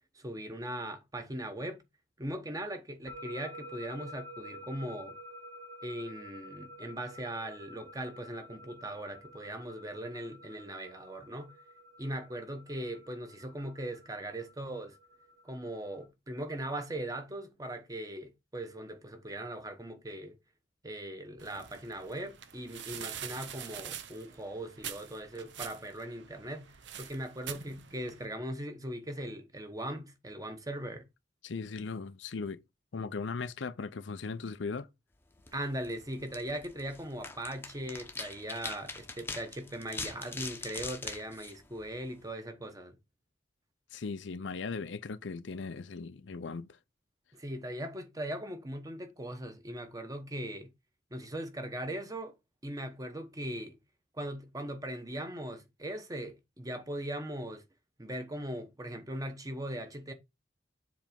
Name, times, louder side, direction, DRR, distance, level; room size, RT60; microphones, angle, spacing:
voice 1, 0.1-1.8 2.2-5.2 5.8-11.6 12.0-15.0 15.4-20.4 20.8-31.1 35.5-43.0 47.3-50.7 51.1-52.3 52.6-53.8 54.1-57.6 58.0-60.1, right 1 dB, 20° right, 1.0 m, -39 dB
sound 1, 3.1-16.1, equal, 85° right, 2.9 m, -50 dB
sound 2, 21.4-28.3, right 9 dB, 65° right, 0.8 m, -45 dB
voice 2, 31.4-32.6 32.9-34.9 43.9-46.8, left 4 dB, 65° left, 0.6 m, -38 dB
sound 3, 35.3-42.3, left 3 dB, 10° left, 0.8 m, -43 dB
7.4 x 3.4 x 5.2 m
head